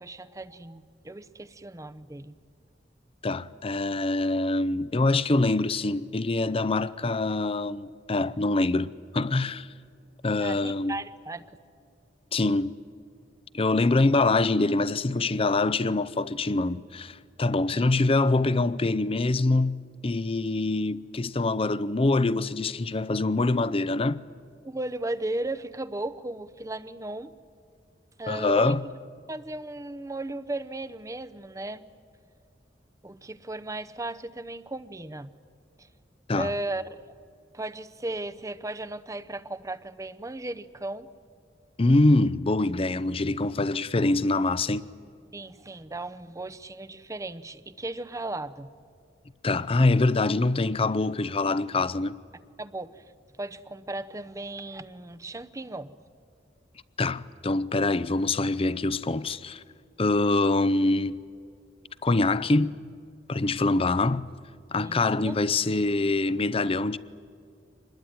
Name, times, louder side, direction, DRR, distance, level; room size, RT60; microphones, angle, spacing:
voice 1, 0.0-2.3 10.4-11.5 17.7-17.9 24.6-27.3 28.2-28.8 29.3-31.8 33.0-35.3 35.8-35.9 36.3-37.2 37.5-41.1 45.3-48.7 52.6-53.0 53.4-55.9 64.8-65.4, right 2 dB, 20° right, 0.7 m, -36 dB
voice 2, 3.2-9.7 10.2-10.9 12.3-12.7 13.5-24.2 28.3-28.8 36.3-36.5 41.8-44.9 49.4-52.2 57.0-59.6 60.0-61.2 62.0-62.8 63.3-64.3 64.7-67.0, left 2 dB, 30° left, 0.6 m, -24 dB
26.0 x 21.0 x 9.3 m
head